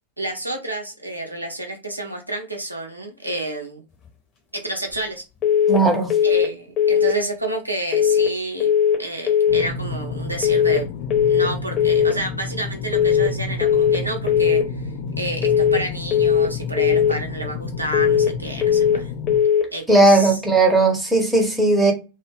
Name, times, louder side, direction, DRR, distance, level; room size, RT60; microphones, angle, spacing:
voice 1, 0.2-3.8 4.5-5.2 6.2-8.7 9.0-10.9 11.3-14.6 15.2-19.1 19.7-20.4, right 1 dB, 85° right, 0.6 m, -29 dB
sound 1, 5.4-5.8 6.1-6.5 6.8-7.2 7.9-8.3 8.6-9.0 9.3-9.7 10.4-10.8 11.1-11.5 11.8-12.2 12.9-13.3 13.6-14.0 14.3-14.7 15.4-15.8 16.1-16.5 16.8-17.2 17.9-18.3 18.6-19.0 19.3-19.7, left 8 dB, 30° left, 0.8 m, -18 dB
voice 2, 5.7-6.1 19.9-21.9, right 2 dB, ahead, 0.8 m, -16 dB
sound 2, 9.5-19.4, left 3 dB, 50° left, 0.3 m, -31 dB
2.2 x 2.0 x 3.3 m
figure-of-eight pair, 90°, 0 cm